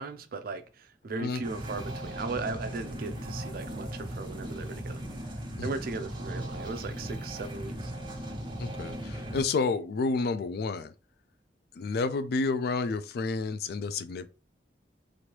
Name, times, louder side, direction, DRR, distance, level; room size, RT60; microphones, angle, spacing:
voice 1, 0.0-5.0 5.6-7.9, right 3 dB, 55° right, 0.4 m, -37 dB
sound 1, 1.4-9.4, right 1 dB, 30° right, 0.7 m, -38 dB
voice 2, 8.6-10.9 11.8-14.3, left 4 dB, 60° left, 0.3 m, -30 dB
3.1 x 2.5 x 2.9 m
head